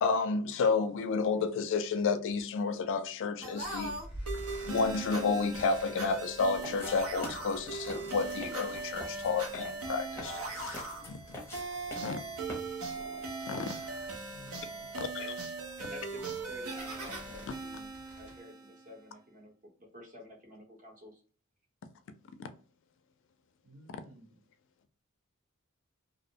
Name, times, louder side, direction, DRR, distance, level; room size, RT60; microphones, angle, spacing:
voice 1, 0.0-3.9 4.7-11.4 12.0-12.2 13.5-13.7 15.0-15.4 22.4-22.5, left 4 dB, 60° left, 0.3 m, -31 dB
sound 1, 3.4-18.9, right 3 dB, 85° right, 0.7 m, -40 dB
sound 2, 3.6-18.4, equal, 5° right, 1.0 m, -50 dB
sound 3, 6.6-13.0, left 1 dB, 10° left, 0.6 m, -47 dB
voice 2, 14.3-15.1 23.6-24.4, right 1 dB, 65° right, 1.2 m, -56 dB
voice 3, 15.8-17.9 18.2-21.2, left 1 dB, 40° right, 0.9 m, -51 dB
2.5 x 2.0 x 2.7 m
head